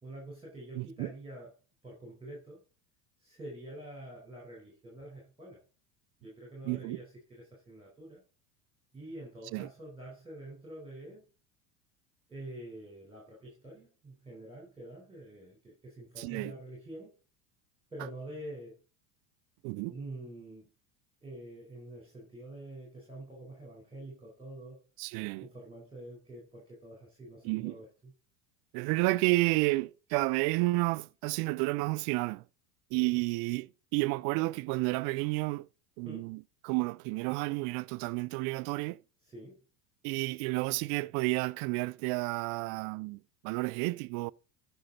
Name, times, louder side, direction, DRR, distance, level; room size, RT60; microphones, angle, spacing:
voice 1, 0.0-1.5 1.8-2.6 3.2-5.6 6.2-8.2 8.9-11.3 12.3-17.1 17.9-18.8 19.9-20.7 21.2-24.8 25.4-28.1 36.0-36.3 39.2-39.6, right 1 dB, 10° right, 4.1 m, -46 dB
voice 2, 0.8-1.1 6.6-7.0 9.5-9.7 16.2-16.5 19.6-19.9 25.0-25.5 27.4-27.7 28.7-32.4 32.9-35.7 36.0-39.0 40.0-44.3, right 23 dB, 50° right, 0.5 m, -31 dB
14.0 x 5.5 x 3.9 m
hypercardioid pair, 90°, 48 cm